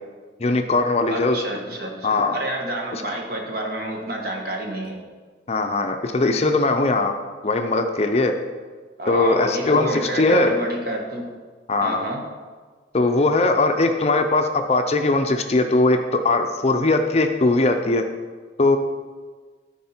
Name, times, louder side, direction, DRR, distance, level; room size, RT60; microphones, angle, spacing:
voice 1, 0.4-1.4 2.0-2.4 2.9-3.0 5.5-7.1 7.4-8.3 9.1-10.5 11.7-12.0 12.9-18.0 18.6-18.8, left 2 dB, 35° left, 6 dB, 0.5 m, -20 dB
voice 2, 1.1-5.0 9.0-11.3 11.8-12.2, right 1 dB, 55° right, 0 dB, 1.5 m, -29 dB
13.0 x 4.7 x 4.3 m, 1.5 s
head